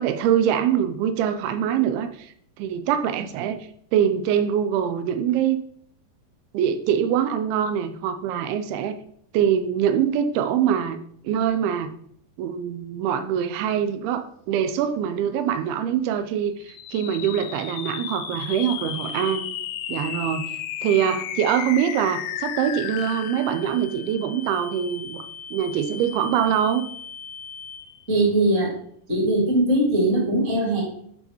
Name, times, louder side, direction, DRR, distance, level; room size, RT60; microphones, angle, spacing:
voice 1, 0.0-5.6 6.5-8.9 9.3-11.9 12.4-19.4 19.9-25.2 25.5-26.8, right 9 dB, 85° right, 9 dB, 2.5 m, -24 dB
sound 1, 16.6-28.2, left 9 dB, 80° left, 2.0 m, -34 dB
voice 2, 28.1-28.7 29.1-30.8, right 1 dB, 25° right, -4 dB, 1.8 m, -20 dB
10.5 x 4.0 x 3.0 m, 0.66 s
omnidirectional pair, 4.4 m